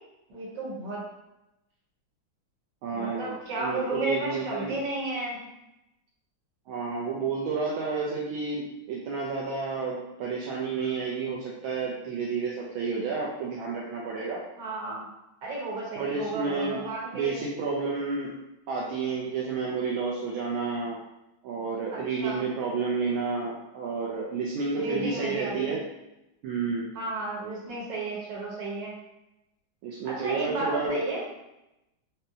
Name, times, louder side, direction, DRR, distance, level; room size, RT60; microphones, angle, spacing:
voice 1, 0.3-1.0 2.9-5.4 14.6-15.0 15.4-17.4 21.9-22.4 24.7-25.8 26.9-28.9 30.0-31.2, right 2 dB, 60° right, -5 dB, 1.7 m, -33 dB
voice 2, 2.8-4.7 6.7-14.4 16.0-16.8 17.1-18.3 18.7-21.0 21.4-25.8 26.4-26.9 29.8-31.0, right 4 dB, 80° right, -4 dB, 1.4 m, -30 dB
5.1 x 2.1 x 2.7 m, 0.91 s
omnidirectional pair, 2.3 m